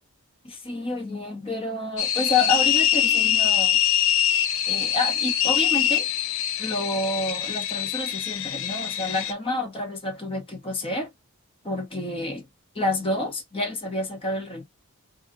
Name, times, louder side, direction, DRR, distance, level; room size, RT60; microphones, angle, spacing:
voice 1, 0.4-3.8 4.7-6.1 6.6-11.1 11.6-12.5 12.7-14.6, left 2 dB, 25° left, 0.7 m, -29 dB
sound 1, 2.0-9.3, left 10 dB, 60° left, 0.4 m, -24 dB
2.5 x 2.1 x 3.7 m
head